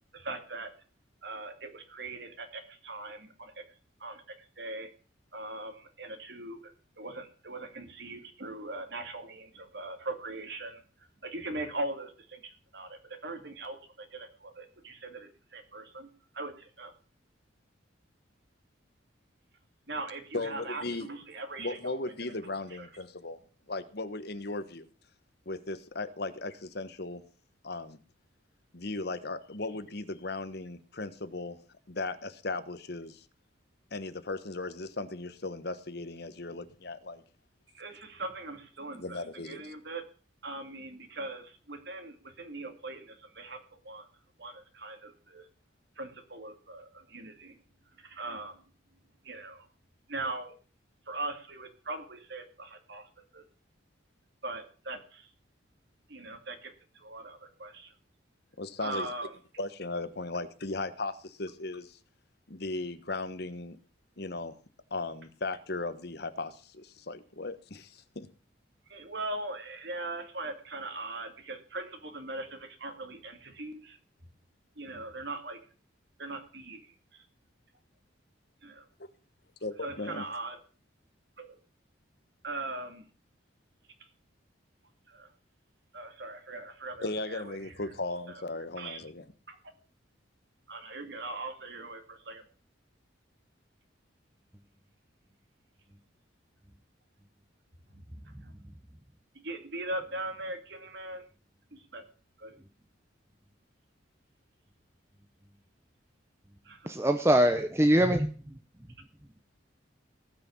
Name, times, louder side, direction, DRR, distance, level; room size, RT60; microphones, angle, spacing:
voice 1, 0.1-0.7 1.2-3.6 4.0-4.9 5.3-10.8 11.2-16.9 19.9-22.0 22.7-22.9 37.7-40.1 40.4-44.1 44.4-45.5 46.0-47.6 48.0-48.6 49.2-49.7 50.1-50.5 51.1-53.4 54.4-55.3 56.1-57.9 58.8-59.3 68.9-74.0 74.8-75.6 76.2-77.2 78.6-78.9 79.8-80.6 81.4-81.6 82.4-83.0 84.0-84.1 85.1-85.3 85.9-87.8 88.3-89.0 89.5-89.6 90.7-92.4 97.9-98.5 99.3-101.2 101.7-102.1 102.4-102.6 106.6-106.9, right 2 dB, 60° right, 6 dB, 2.4 m, -40 dB
voice 2, 20.3-21.1 21.6-23.4 23.7-24.9 25.5-27.2 27.6-28.0 28.7-31.6 31.9-33.2 33.9-37.2 38.9-39.6 58.6-59.1 59.6-62.0 62.5-63.8 64.2-64.6 64.9-68.3 79.6-80.2 87.0-89.2, left 2 dB, 55° left, 11 dB, 1.2 m, -37 dB
voice 3, 106.9-108.3, right 1 dB, 15° right, 7 dB, 0.8 m, -23 dB
18.0 x 6.2 x 7.2 m, 0.40 s
head